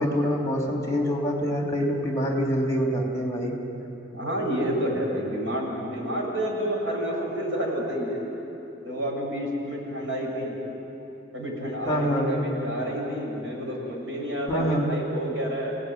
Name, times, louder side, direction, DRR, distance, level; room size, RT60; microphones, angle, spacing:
voice 1, 0.0-3.6 11.9-12.3 14.5-14.9, equal, 15° left, 0 dB, 3.1 m, -25 dB
voice 2, 4.1-8.2 8.8-10.6 11.3-15.8, equal, 85° right, -2 dB, 7.5 m, -29 dB
28.0 x 18.0 x 9.5 m, 3.0 s
head